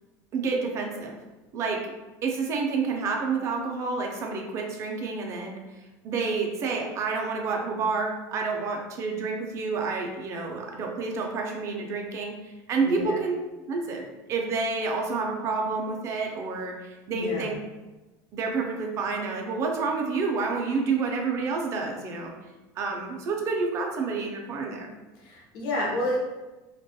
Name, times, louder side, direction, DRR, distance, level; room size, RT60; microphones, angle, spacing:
voice 1, 0.3-1.2 1.5-1.8 2.2-5.6 6.0-13.4 13.7-17.6 18.3-22.3 22.8-24.9, right 4 dB, 30° right, 1 dB, 0.3 m, -29 dB
voice 2, 12.8-13.2 17.1-17.5 25.2-26.2, left 1 dB, 55° left, -3 dB, 0.5 m, -30 dB
2.2 x 2.0 x 2.7 m, 1.1 s
cardioid pair, 160°, 9 cm